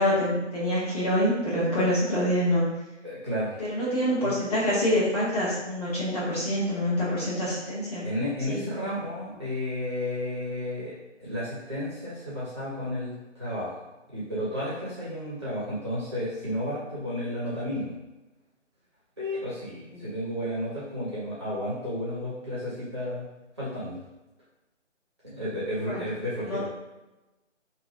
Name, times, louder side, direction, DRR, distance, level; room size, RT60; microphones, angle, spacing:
voice 1, 0.0-2.7 3.7-8.1 8.5-8.6 19.9-20.1 25.9-26.0 26.5-26.7, equal, 30° left, -9 dB, 1.3 m, -26 dB
voice 2, 3.0-3.6 4.2-4.3 8.0-10.9 11.2-17.9 19.2-23.3 23.6-24.0 25.2-26.7, left 1 dB, 25° right, -10 dB, 0.8 m, -32 dB
3.0 x 2.4 x 3.8 m, 1.1 s
figure-of-eight pair, 155°, 37 cm